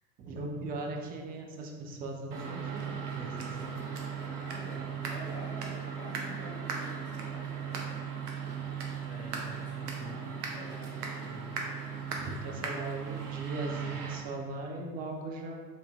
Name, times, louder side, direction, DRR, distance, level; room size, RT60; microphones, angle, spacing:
voice 1, 0.2-3.9 12.2-15.5, right 2 dB, 20° right, 1 dB, 0.3 m, -39 dB
sound 1, 2.3-14.2, right 6 dB, 70° right, 0.7 m, -37 dB
voice 2, 4.3-7.8 9.0-11.7, equal, 80° left, -4 dB, 1.0 m, -47 dB
4.7 x 3.2 x 2.3 m, 1.5 s
figure-of-eight pair, 65°, 49 cm